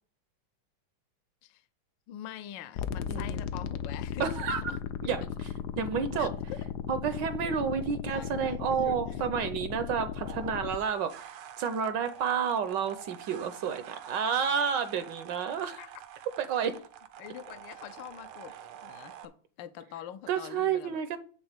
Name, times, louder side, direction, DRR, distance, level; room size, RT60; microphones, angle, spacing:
voice 1, 2.1-4.8 6.2-6.6 7.9-9.3 15.7-15.9 17.2-18.5 18.8-21.2, left 11 dB, 70° left, 1.2 m, -45 dB
sound 1, 2.8-10.8, left 8 dB, 90° left, 0.9 m, -36 dB
voice 2, 4.2-4.6 5.0-5.5 5.8-6.3 6.9-15.8 16.4-16.8 20.3-21.2, right 7 dB, 70° right, 1.2 m, -30 dB
sound 2, 10.2-19.3, right 10 dB, 90° right, 1.6 m, -47 dB
9.0 x 3.6 x 6.5 m
omnidirectional pair, 2.3 m